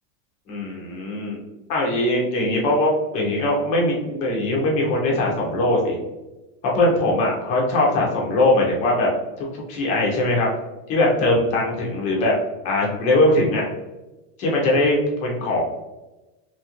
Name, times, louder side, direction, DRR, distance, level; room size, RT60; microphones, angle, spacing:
voice 1, 0.5-1.4 1.7-5.9 6.7-9.1 9.4-10.5 10.9-12.3 12.6-13.7 14.4-15.6, left 1 dB, 20° left, -3 dB, 0.3 m, -21 dB
2.8 x 2.3 x 2.8 m, 1.0 s
supercardioid pair, 165°, 38 cm